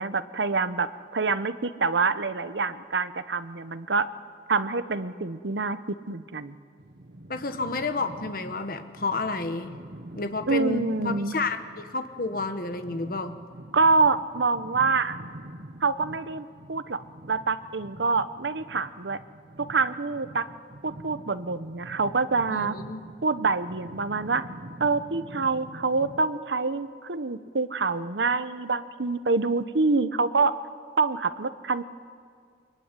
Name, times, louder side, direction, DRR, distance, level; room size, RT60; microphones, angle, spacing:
voice 1, 0.0-4.1 4.5-6.6 10.5-11.3 13.7-15.2 15.8-17.0 17.3-19.2 19.6-20.5 20.8-22.7 23.2-24.4 24.8-30.6 31.0-31.8, right 4 dB, 80° right, 13 dB, 1.0 m, -26 dB
sound 1, 6.8-26.3, right 1 dB, 60° right, 1.2 m, -45 dB
voice 2, 7.3-9.8 10.1-13.4 22.5-23.1, left 3 dB, 50° left, 8 dB, 1.3 m, -30 dB
24.0 x 22.5 x 9.8 m, 2.1 s
head